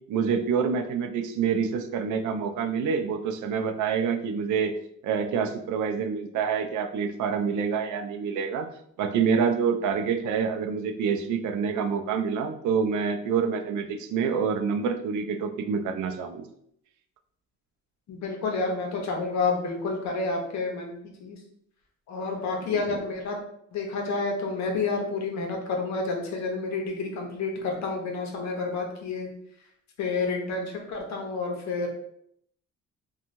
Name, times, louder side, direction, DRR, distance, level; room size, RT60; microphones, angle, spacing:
voice 1, 0.1-4.7 5.0-8.7 9.0-16.5 22.7-23.0, right 6 dB, 75° right, 6 dB, 0.4 m, -27 dB
voice 2, 18.1-21.4 22.1-23.4 23.7-29.3 30.0-31.9, left 3 dB, 65° left, 2 dB, 0.8 m, -29 dB
3.0 x 2.3 x 2.6 m, 0.71 s
cardioid pair, 90°, 30 cm